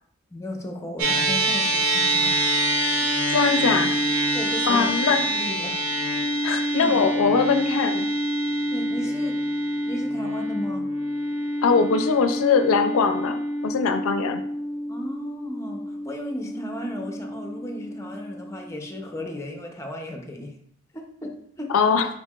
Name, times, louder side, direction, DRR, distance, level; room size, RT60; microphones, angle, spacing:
voice 1, 0.3-2.4 4.3-5.8 6.8-7.0 8.7-9.4 9.9-10.9 14.9-20.6 20.9-21.7, left 1 dB, 15° left, 2 dB, 0.5 m, -35 dB
sound 1, 1.0-19.5, right 1 dB, 90° right, 0.8 m, -26 dB
voice 2, 3.3-3.9 4.7-5.2 6.4-8.1 11.6-14.4 21.7-22.1, left 5 dB, 80° left, 8 dB, 0.4 m, -21 dB
4.5 x 4.1 x 2.3 m, 0.66 s
head